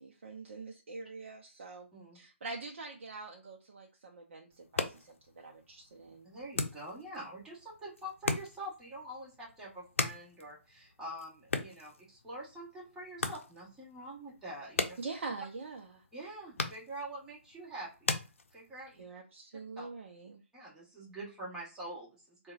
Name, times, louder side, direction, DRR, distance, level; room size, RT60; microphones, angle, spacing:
voice 1, 0.0-1.9 2.1-6.3 15.0-16.0 19.0-20.4, right 3 dB, 65° right, 1 dB, 0.6 m, -44 dB
sound 1, 4.5-19.0, left 4 dB, 80° left, 0.6 m, -40 dB
voice 2, 6.2-15.0 16.1-18.1 18.5-19.0 19.8-19.9 20.5-22.5, right 1 dB, 10° right, -6 dB, 1.2 m, -45 dB
3.8 x 2.3 x 2.4 m, 0.32 s
hypercardioid pair, 145°, 7 cm